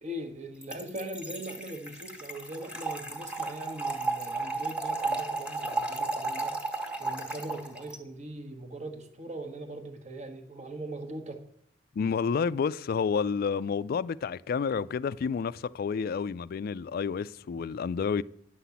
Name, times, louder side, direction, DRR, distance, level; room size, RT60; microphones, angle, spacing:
voice 1, 0.0-6.5 7.0-11.4, right 1 dB, 40° right, 1.2 m, -40 dB
Trickle dribble / Fill (with liquid), 0.6-8.0, right 3 dB, 5° right, 1.4 m, -34 dB
voice 2, 12.0-18.2, left 6 dB, 55° left, 0.3 m, -30 dB
10.5 x 5.8 x 8.3 m
head